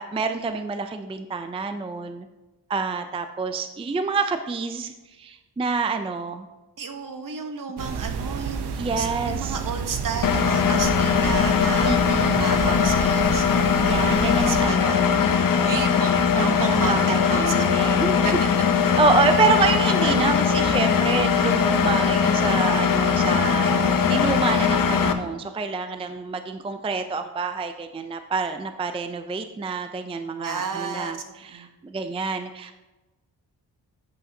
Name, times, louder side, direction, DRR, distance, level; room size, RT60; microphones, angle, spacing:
voice 1, 0.0-2.3 2.7-6.5 8.8-9.6 11.8-12.6 13.6-15.1 15.5-15.6 16.4-18.2 19.0-32.8, right 4 dB, 15° right, 8 dB, 0.4 m, -27 dB
voice 2, 6.8-8.7 9.0-17.7 18.2-18.3 19.9-20.2 20.5-20.7 30.4-31.2 31.5-31.7, right 5 dB, 55° right, 6 dB, 1.0 m, -33 dB
sound 1, 7.8-14.7, right 5 dB, 85° right, 0.7 m, -31 dB
Engine, 10.2-25.1, left 6 dB, 55° left, 0.7 m, -20 dB
11.0 x 8.5 x 2.7 m, 1.1 s
wide cardioid pair, 125°, 39 cm